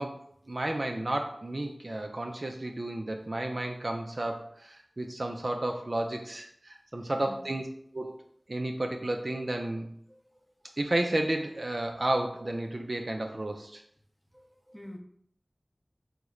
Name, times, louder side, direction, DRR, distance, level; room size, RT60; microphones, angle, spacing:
voice 1, 0.0-7.7 7.9-8.2 8.5-9.9 10.8-13.8, right 1 dB, 55° right, 3 dB, 0.3 m, -32 dB
voice 2, 7.1-7.6 10.1-10.4 14.3-15.0, left 1 dB, ahead, 1 dB, 0.5 m, -48 dB
3.0 x 2.1 x 3.6 m, 0.66 s
wide cardioid pair, 50°, 0 cm